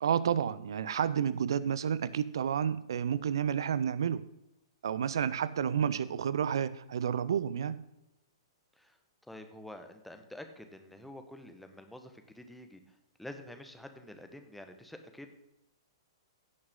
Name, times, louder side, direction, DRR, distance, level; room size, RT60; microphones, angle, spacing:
voice 1, 0.0-4.2 4.8-7.8, right 8 dB, 60° right, 17 dB, 0.6 m, -30 dB
voice 2, 9.3-15.3, left 1 dB, ahead, 6 dB, 1.2 m, -48 dB
16.5 x 6.2 x 3.7 m, 0.87 s
figure-of-eight pair, 115°, 3 cm